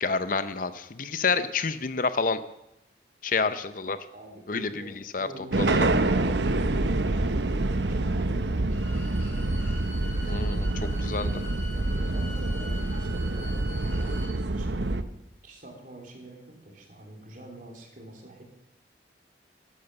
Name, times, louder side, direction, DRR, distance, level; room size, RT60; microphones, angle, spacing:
voice 1, 0.0-2.4 3.2-4.0 4.5-5.3 5.6-5.9 10.2-10.7 11.0-11.3, left 4 dB, 45° left, 12 dB, 0.7 m, -28 dB
voice 2, 4.1-8.9 9.2-9.7 10.7-11.0 11.7-15.1 15.4-18.4, right 1 dB, 45° right, 1 dB, 3.5 m, -45 dB
sound 1, 5.5-15.0, right 2 dB, 70° right, 0.9 m, -26 dB
Bowed string instrument, 8.7-14.3, left 1 dB, 15° left, 3.2 m, -45 dB
13.0 x 12.0 x 6.7 m, 0.84 s
head